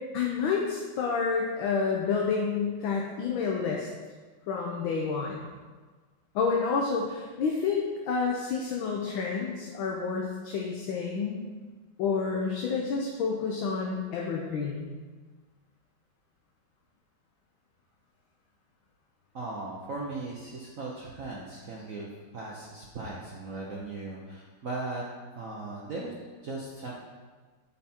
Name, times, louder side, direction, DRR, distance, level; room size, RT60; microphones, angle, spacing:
voice 1, 0.1-3.9 4.5-5.5 6.3-11.4 12.0-14.9, left 5 dB, 70° left, -1 dB, 1.6 m, -29 dB
voice 2, 19.3-22.1 22.3-25.0 25.4-26.1 26.4-26.9, right 2 dB, 50° right, -3 dB, 1.0 m, -38 dB
8.9 x 6.0 x 4.4 m, 1.4 s
omnidirectional pair, 2.4 m